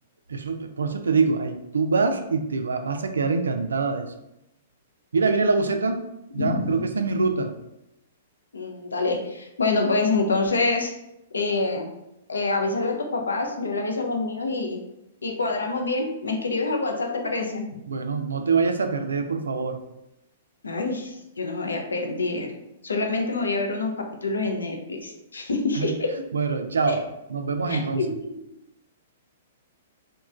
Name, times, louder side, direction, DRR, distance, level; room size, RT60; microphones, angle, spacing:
voice 1, 0.3-4.1 5.1-6.0 6.3-7.5 17.9-19.8 25.7-25.9 26.3-27.0 27.3-28.0, right 4 dB, 80° right, 6 dB, 0.3 m, -24 dB
voice 2, 6.4-6.8 8.5-10.9 11.3-11.9 12.3-14.8 15.2-17.6 20.6-22.5 22.8-23.9 24.2-26.1 26.9-27.0 27.7-28.4, left 3 dB, 80° left, 3 dB, 0.5 m, -26 dB
3.0 x 2.1 x 2.4 m, 0.85 s
figure-of-eight pair, 115°, 0 cm